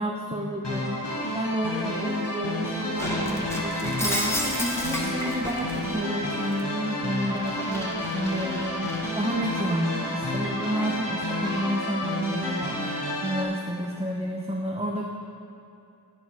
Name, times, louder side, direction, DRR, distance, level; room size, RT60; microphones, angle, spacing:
voice 1, 0.0-15.0, right 1 dB, 15° right, -1 dB, 1.0 m, -31 dB
sound 1, 0.6-13.4, left 1 dB, 75° left, 2.0 m, -30 dB
Shatter, 3.0-5.8 6.3-9.4, equal, 5° left, 1.7 m, -33 dB
11.5 x 10.5 x 5.2 m, 2.6 s
wide cardioid pair, 55°, 42 cm